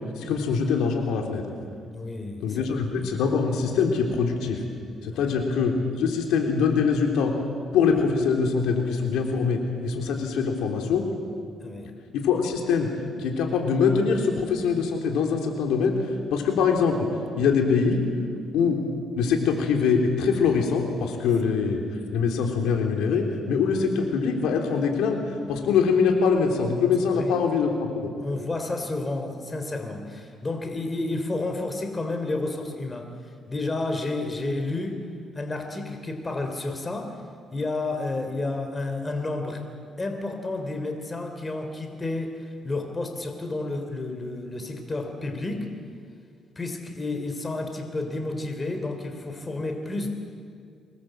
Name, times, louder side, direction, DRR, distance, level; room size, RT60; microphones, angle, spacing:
voice 1, 0.2-1.5 2.4-4.6 5.0-7.3 7.7-11.0 12.1-12.9 13.2-16.0 16.3-17.1 17.4-18.0 18.5-18.8 19.2-21.8 22.1-25.2 25.5-28.1, left 5 dB, 90° left, 3 dB, 3.5 m, -23 dB
voice 2, 1.9-2.7 5.1-5.3 11.6-11.9 27.0-27.4 28.2-33.1 33.5-35.0 35.3-37.2 37.5-39.6 40.0-45.7 46.5-50.1, left 2 dB, 25° left, 5 dB, 3.4 m, -31 dB
24.5 x 20.5 x 7.8 m, 2.2 s
cardioid pair, 90°, 0 cm